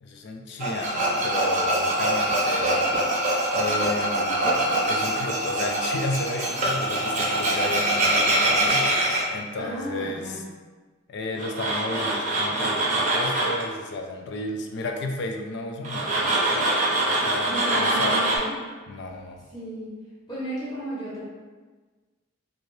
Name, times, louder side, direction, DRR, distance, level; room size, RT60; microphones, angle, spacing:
voice 1, 0.0-2.9 3.5-8.9 9.3-10.3 11.1-16.8 17.1-18.2 18.9-19.4, left 2 dB, 55° left, 3 dB, 0.3 m, -33 dB
Tools, 0.6-9.2 11.4-13.6 15.8-18.4, right 1 dB, 35° right, 0.6 m, -24 dB
voice 2, 9.6-10.4 17.5-18.6 19.5-19.9 20.3-21.2, right 1 dB, 20° left, -8 dB, 0.8 m, -33 dB
2.6 x 2.5 x 3.1 m, 1.4 s
head